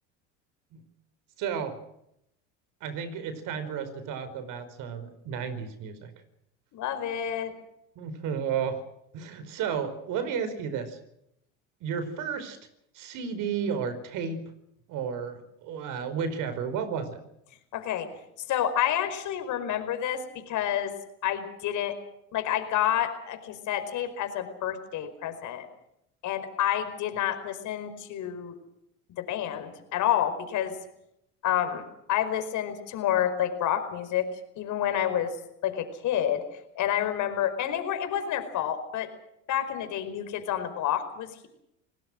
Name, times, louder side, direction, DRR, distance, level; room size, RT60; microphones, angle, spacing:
voice 1, 1.4-1.8 2.8-6.1 7.9-8.8 9.1-11.0 11.8-12.6 12.9-14.4 14.9-17.2, right 7 dB, 60° right, 11 dB, 4.8 m, -32 dB
voice 2, 6.7-7.5 17.7-18.1 18.5-20.2 20.5-20.9 21.2-22.0 22.3-25.7 26.2-28.5 29.2-30.7 31.4-31.8 32.1-34.3 34.6-35.3 35.6-36.4 36.7-39.1 39.5-41.5, left 10 dB, 55° left, 9 dB, 5.0 m, -29 dB
28.0 x 19.0 x 6.3 m, 0.78 s
hypercardioid pair, 85°, 35 cm